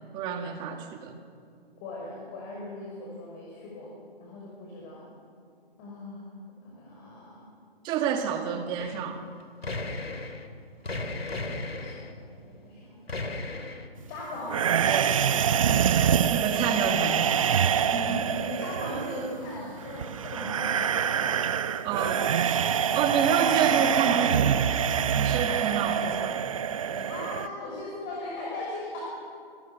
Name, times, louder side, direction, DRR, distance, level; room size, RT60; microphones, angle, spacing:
voice 1, 0.1-1.1 7.8-9.2 14.9-15.2 16.3-17.3 21.8-22.3 22.9-24.7 25.2-26.5, right 7 dB, 15° right, 5 dB, 1.8 m, -28 dB
voice 2, 1.8-3.9 4.2-5.1 5.8-6.3 6.6-7.5 11.4-13.0 14.1-14.7 15.7-15.9 16.5-16.7 17.8-21.4 23.3-23.5 26.9-29.0, left 1 dB, 20° left, -3 dB, 5.8 m, -38 dB
sound 1, 8.8-9.1 9.4-10.5 10.8-12.1 13.1-13.9, left 2 dB, 75° left, 2.9 m, -35 dB
sound 2, 14.5-27.5, right 8 dB, 35° right, 0.9 m, -25 dB
28.0 x 23.5 x 6.2 m, 2.4 s
figure-of-eight pair, 145°, 31 cm